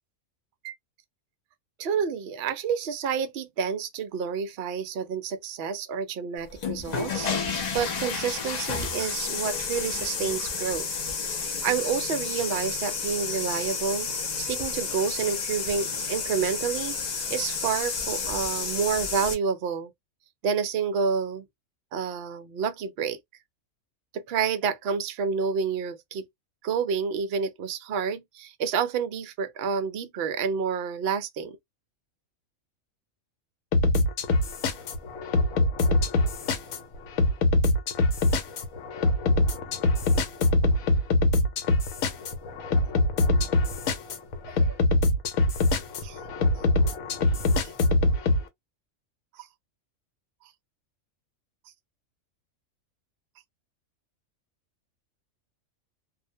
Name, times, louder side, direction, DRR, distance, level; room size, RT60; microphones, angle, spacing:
voice 1, 1.8-11.0 11.6-14.1 14.4-19.9 20.4-21.4 21.9-23.2 24.1-26.2 26.6-31.6 44.6-44.8 46.0-46.2 49.3-49.5, right 6 dB, 65° right, 0.7 m, -29 dB
sound 1, 6.5-19.3, left 5 dB, 55° left, 0.4 m, -31 dB
sound 2, 33.7-48.4, left 2 dB, 80° left, 1.0 m, -24 dB
2.5 x 2.1 x 2.6 m
omnidirectional pair, 1.4 m